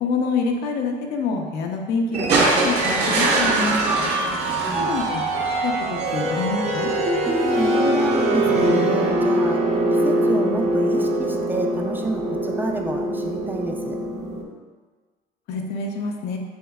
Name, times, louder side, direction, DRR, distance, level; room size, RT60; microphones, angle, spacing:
voice 1, 0.0-3.8 4.8-5.2 5.6-6.9 15.5-16.4, left 4 dB, 80° left, 2 dB, 0.7 m, -26 dB
sound 1, 2.1-14.4, right 1 dB, 40° right, 0.7 m, -23 dB
sound 2, 2.3-5.6 6.9-7.0, right 2 dB, 75° right, 1.1 m, -23 dB
voice 2, 4.2-4.9 7.2-9.6 9.9-14.0, right 2 dB, 10° right, 2 dB, 0.4 m, -30 dB
7.2 x 3.1 x 2.3 m, 1.4 s
cardioid pair, 110°, 17 cm